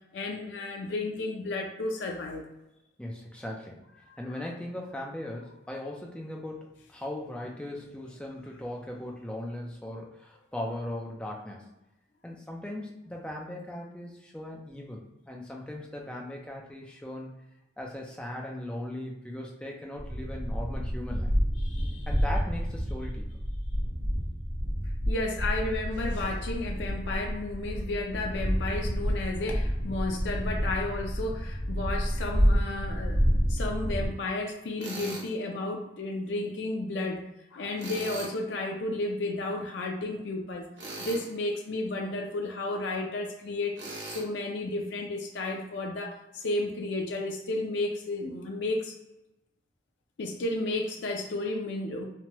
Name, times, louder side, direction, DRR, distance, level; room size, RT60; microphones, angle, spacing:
voice 1, 0.1-2.5 4.1-4.2 21.6-22.1 25.1-33.2 33.5-37.2 37.5-40.6 41.0-43.8 44.1-48.9 50.2-52.0, left 2 dB, 80° left, 1 dB, 0.4 m, -32 dB
voice 2, 3.0-3.8 4.2-11.7 12.2-17.3 17.8-21.3 22.1-23.4, left 1 dB, 5° left, -1 dB, 0.4 m, -38 dB
sound 1, 20.0-34.1, equal, 50° right, 0.9 m, -29 dB
Tools, 34.8-35.3 37.8-38.4 40.8-41.3 43.8-44.2, right 2 dB, 85° right, 0.8 m, -39 dB
3.0 x 2.2 x 2.9 m, 0.92 s
head